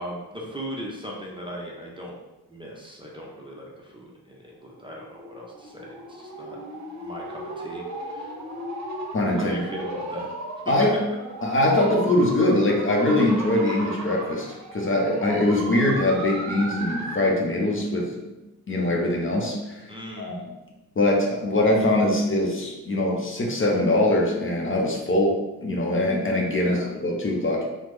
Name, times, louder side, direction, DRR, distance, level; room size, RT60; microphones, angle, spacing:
voice 1, 0.0-2.2 2.5-6.6 7.0-7.8 8.1-8.3 9.3-10.3 19.9-20.5 26.6-26.8, equal, 15° right, -3 dB, 0.6 m, -38 dB
sound 1, 4.7-17.4, right 2 dB, 45° right, 0.8 m, -36 dB
voice 2, 9.1-9.6 10.7-11.0 11.4-18.1 18.7-19.8 20.2-20.4 21.0-27.6, left 1 dB, 35° left, -1 dB, 0.7 m, -22 dB
3.2 x 2.1 x 3.1 m, 1.0 s
cardioid pair, 65°, 38 cm